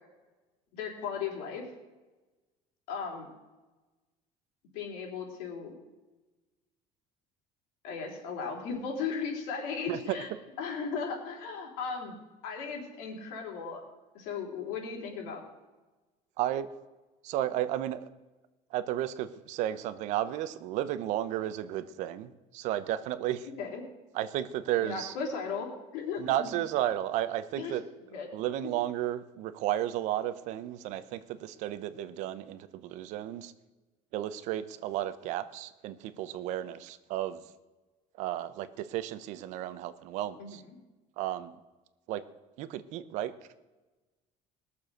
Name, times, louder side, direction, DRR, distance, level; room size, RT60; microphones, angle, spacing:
voice 1, 0.7-1.7 2.9-3.3 4.7-5.7 7.8-10.3 10.6-12.2 12.4-13.8 14.1-15.4 23.6-23.8 24.8-26.5 27.6-27.7 28.1-28.3 40.4-40.5, left 5 dB, 90° left, 1 dB, 3.7 m, -36 dB
voice 2, 16.4-16.7 17.2-18.1 18.7-23.5 24.1-25.1 26.2-27.9 28.3-33.5 34.1-37.4 38.2-40.6 41.2-41.6 42.1-42.2 42.6-43.3, right 12 dB, 60° right, 14 dB, 0.8 m, -33 dB
20.0 x 7.0 x 6.4 m, 1.2 s
cardioid pair, 170°, 14 cm